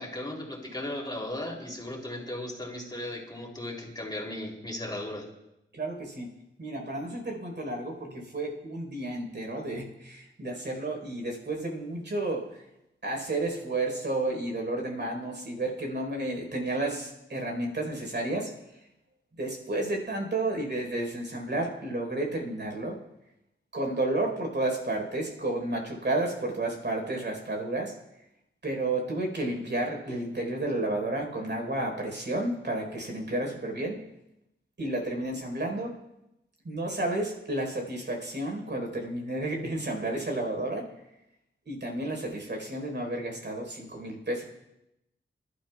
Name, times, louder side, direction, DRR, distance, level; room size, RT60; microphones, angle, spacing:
voice 1, 0.0-5.3, left 1 dB, 20° left, -1 dB, 3.2 m, -36 dB
voice 2, 5.7-6.3 6.6-12.6 13.0-18.9 19.4-23.0 23.7-27.9 28.6-34.0 34.8-35.9 36.6-40.9 41.6-44.4, right 2 dB, 55° right, 1 dB, 4.4 m, -31 dB
28.0 x 12.0 x 2.4 m, 0.88 s
wide cardioid pair, 70°, 21 cm